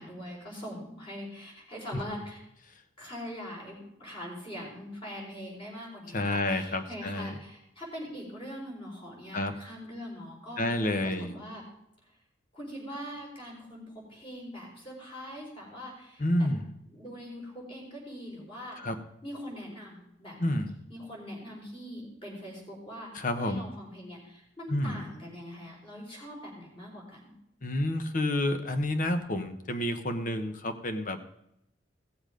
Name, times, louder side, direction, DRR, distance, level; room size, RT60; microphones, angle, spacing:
voice 1, 0.0-2.4 3.0-11.6 12.5-16.5 16.9-18.8 19.2-20.4 20.9-27.3, equal, 30° left, -2 dB, 4.5 m, -42 dB
voice 2, 6.1-7.4 9.3-9.5 10.6-11.3 16.2-16.7 18.8-19.0 20.4-20.7 23.1-23.7 24.7-25.0 27.6-31.2, left 1 dB, 45° left, 8 dB, 1.1 m, -29 dB
16.5 x 7.2 x 5.1 m, 0.78 s
head